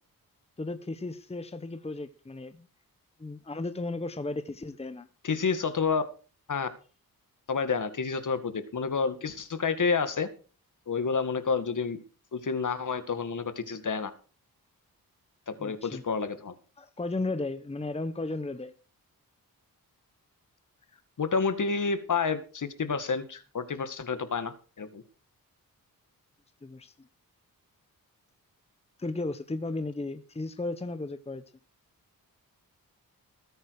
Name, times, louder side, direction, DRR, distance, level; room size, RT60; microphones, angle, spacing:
voice 1, 0.6-2.7 3.2-5.1 15.6-16.0 16.8-18.7 26.6-27.1 29.0-31.4, left 2 dB, 15° left, 1.0 m, -35 dB
voice 2, 5.2-6.0 6.5-6.7 7.5-10.3 10.9-12.0 12.3-14.1 15.5-16.5 21.2-25.0, left 5 dB, 55° left, 2.0 m, -29 dB
20.5 x 9.4 x 4.8 m
wide cardioid pair, 110°, 36 cm